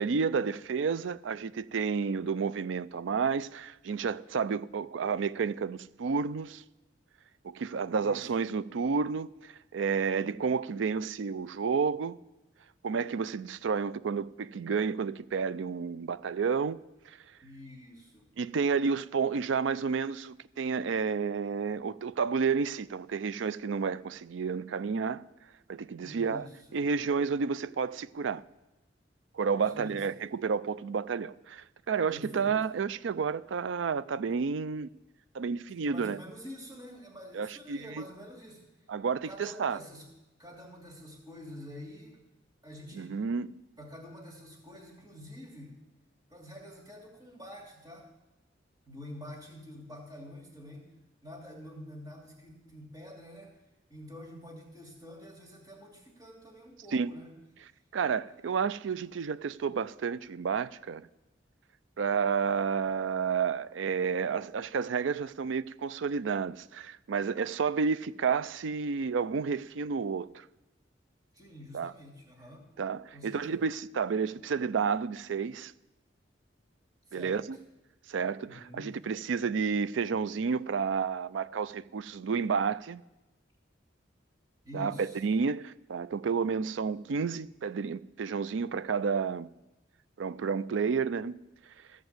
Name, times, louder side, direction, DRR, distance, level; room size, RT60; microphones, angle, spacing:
voice 1, 0.0-6.6 7.4-12.2 12.8-16.8 18.4-25.2 25.7-26.5 26.7-28.4 29.3-34.9 35.3-36.2 37.3-38.0 38.9-39.8 42.9-43.5 56.9-57.1 57.9-61.0 62.0-70.4 71.7-71.9 72.8-75.7 77.1-77.6 78.1-83.0 84.7-89.5 90.2-91.4, right 5 dB, 80° right, 0.4 m, -31 dB
voice 2, 7.9-8.3 17.4-18.2 26.0-26.8 29.5-30.0 32.1-32.6 35.8-38.6 39.2-40.1 40.4-42.3 42.6-43.2 43.8-45.8 46.3-48.1 48.9-50.9 51.2-53.5 53.9-57.3 71.3-72.7 73.1-73.6 77.1-77.4 78.5-79.0 84.6-85.2, left 1 dB, 20° right, 2.5 m, -47 dB
14.0 x 5.3 x 7.9 m
head